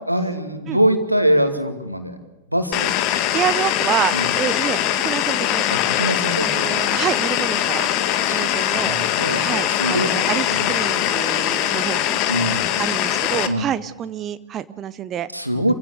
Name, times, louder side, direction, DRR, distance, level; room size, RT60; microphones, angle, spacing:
voice 1, 0.1-2.2 2.5-2.9 4.1-4.3 5.7-6.8 8.2-8.4 8.7-10.1 10.5-10.7 12.3-12.6 13.5-13.6 15.3-15.7, equal, 90° right, 7 dB, 2.5 m, -23 dB
sound 1, 2.7-13.5, left 12 dB, 40° left, 1.7 m, -21 dB
voice 2, 3.3-5.7 6.4-7.9 8.3-9.0 9.3-12.2 12.8-15.3 15.5-15.7, right 10 dB, 30° right, 14 dB, 0.8 m, -27 dB
27.5 x 16.0 x 8.2 m, 1.1 s
figure-of-eight pair, 90°, 0 cm